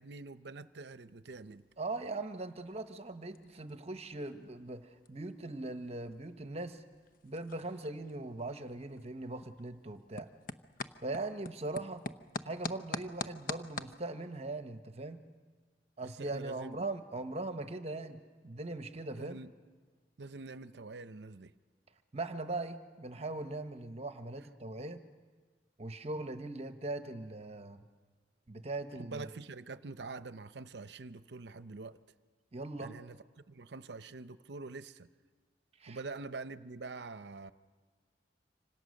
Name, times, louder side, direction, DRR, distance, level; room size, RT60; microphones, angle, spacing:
voice 1, 0.0-1.6 16.0-16.8 19.1-19.5 20.2-21.5 28.9-32.0 32.8-33.2 33.5-35.1 35.9-37.5, right 3 dB, 70° right, 0.7 m, -45 dB
sound 1, 1.3-14.0, left 3 dB, 50° left, 0.8 m, -47 dB
voice 2, 1.8-6.8 7.2-10.3 11.0-12.0 12.4-15.2 16.0-19.4 22.1-25.0 25.8-27.8 28.5-29.3 32.5-32.9 35.8-36.0, right 2 dB, 35° right, 1.1 m, -40 dB
26.0 x 26.0 x 6.5 m
head